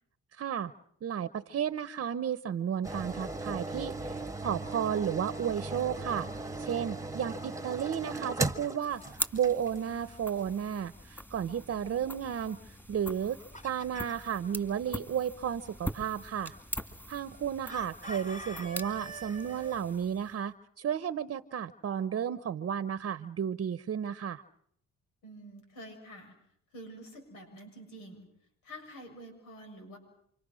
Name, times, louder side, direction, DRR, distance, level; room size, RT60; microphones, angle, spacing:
voice 1, 0.3-0.7 1.0-6.3 6.6-12.6 12.9-13.4 13.6-16.6 17.1-24.4, right 8 dB, 50° right, 13 dB, 0.9 m, -33 dB
sound 1, 2.8-9.9 10.4-10.5, right 2 dB, 10° right, 1.5 m, -37 dB
sound 2, 8.8-20.5, equal, 5° left, 2.6 m, -43 dB
Chicken rooster, 13.1-14.3 17.7-19.8, right 1 dB, 25° left, 2.9 m, -44 dB
voice 2, 25.2-26.4 26.7-28.3 28.6-30.0, right 1 dB, 90° left, 4 dB, 7.0 m, -48 dB
28.0 x 25.0 x 6.3 m, 0.68 s
cardioid pair, 90°, 30 cm